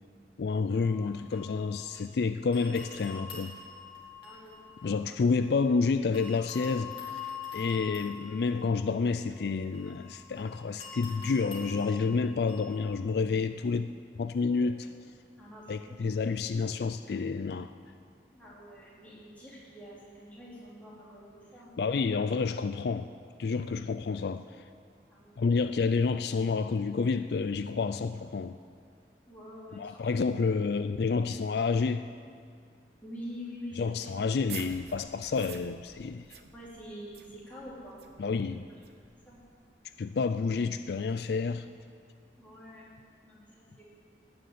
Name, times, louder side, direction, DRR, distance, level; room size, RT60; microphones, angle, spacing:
voice 1, 0.4-3.6 4.8-7.2 7.5-14.9 15.7-17.7 21.8-23.1 23.4-24.4 25.4-28.6 29.8-32.1 33.8-36.4 38.2-38.7 40.0-41.7, left 4 dB, 65° left, 10 dB, 0.4 m, -29 dB
sound 1, 0.7-2.2 2.5-5.7 6.1-12.9, left 6 dB, 30° left, 3.3 m, -45 dB
voice 2, 4.2-5.0 14.6-14.9 15.4-16.0 18.3-21.8 25.1-25.3 29.3-30.2 33.0-34.2 36.5-38.4 39.2-39.4 42.4-43.0 43.2-43.8, equal, 10° left, -8 dB, 4.1 m, -46 dB
sound 2, 34.2-39.5, right 7 dB, 65° right, 1.0 m, -48 dB
17.5 x 6.8 x 9.3 m, 2.2 s
head